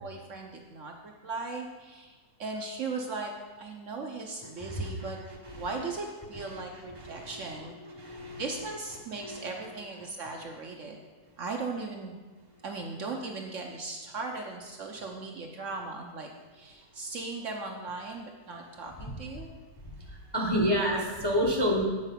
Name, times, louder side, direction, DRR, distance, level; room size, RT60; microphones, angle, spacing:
voice 1, 0.0-3.3 3.6-5.2 5.5-7.7 8.4-11.0 11.4-12.1 12.6-19.5, right 3 dB, 60° right, 2 dB, 0.9 m, -38 dB
voice 2, 4.4-5.8 6.3-8.7 9.1-9.4 10.0-10.1 19.0-19.4 19.8-21.8, equal, 20° left, -2 dB, 0.7 m, -32 dB
8.2 x 4.6 x 5.6 m, 1.3 s
omnidirectional pair, 1.7 m